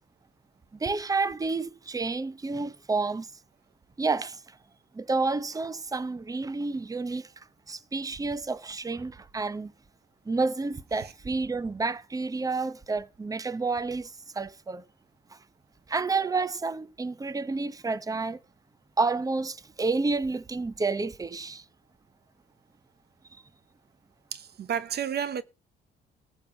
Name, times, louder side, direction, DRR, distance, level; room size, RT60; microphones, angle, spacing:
voice 1, 0.8-3.3 4.0-4.4 4.9-7.3 7.7-9.7 10.3-14.8 15.9-18.4 19.0-21.6, right 3 dB, 15° right, 0.8 m, -30 dB
voice 2, 24.3-25.4, right 8 dB, 55° right, 0.8 m, -31 dB
14.0 x 5.5 x 7.5 m
cardioid pair, 90°, 20 cm